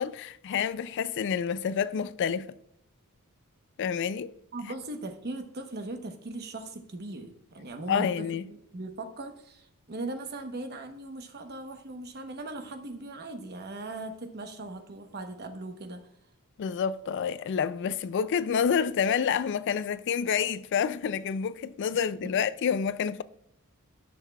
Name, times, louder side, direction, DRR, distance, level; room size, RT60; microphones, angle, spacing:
voice 1, 0.0-2.5 3.8-4.3 7.9-8.5 16.6-23.2, left 7 dB, 55° left, 0.3 m, -28 dB
voice 2, 4.5-16.0 22.2-22.3, right 2 dB, 45° right, 1.0 m, -39 dB
13.0 x 6.4 x 2.3 m
head